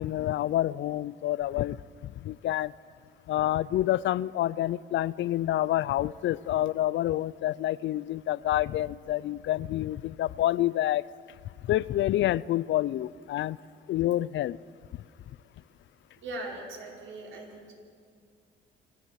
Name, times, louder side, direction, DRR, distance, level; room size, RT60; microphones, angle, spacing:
voice 1, 0.0-1.8 2.0-2.7 3.3-11.0 11.6-13.6 13.9-14.6, left 14 dB, 70° left, 21 dB, 0.5 m, -28 dB
voice 2, 16.2-17.7, right 2 dB, 75° right, -1 dB, 5.0 m, -40 dB
26.0 x 13.5 x 7.5 m, 2.3 s
cardioid pair, 90°, 20 cm